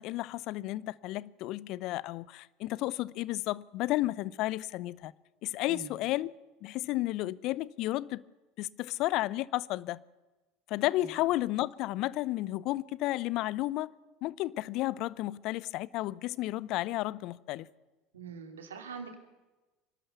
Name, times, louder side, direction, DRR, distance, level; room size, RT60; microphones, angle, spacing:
voice 1, 0.0-5.1 5.4-6.3 6.6-8.2 8.6-10.0 10.7-13.9 14.2-17.7, left 17 dB, 55° left, 0.6 m, -32 dB
voice 2, 18.1-19.2, right 6 dB, 80° right, 2.7 m, -43 dB
26.0 x 12.5 x 8.2 m
hypercardioid pair, 75°, 0 cm